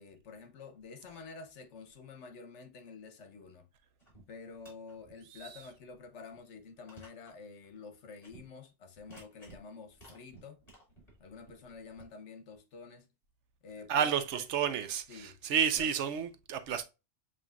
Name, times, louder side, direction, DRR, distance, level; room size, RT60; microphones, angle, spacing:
voice 1, 0.0-3.7 4.3-10.6 11.2-13.1 13.6-14.5 15.1-15.4 15.7-15.9, left 4 dB, 75° left, 1.1 m, -49 dB
sound 1, 4.0-4.2 4.5-5.1 5.6-5.7 6.4-6.5 6.9-7.3 7.6-7.7 8.2-8.4 8.9-9.6 9.9-12.0, right 2 dB, 30° left, 2.5 m, -55 dB
voice 2, 13.9-16.8, right 8 dB, 75° right, 0.9 m, -31 dB
7.5 x 2.7 x 2.3 m
omnidirectional pair, 1.2 m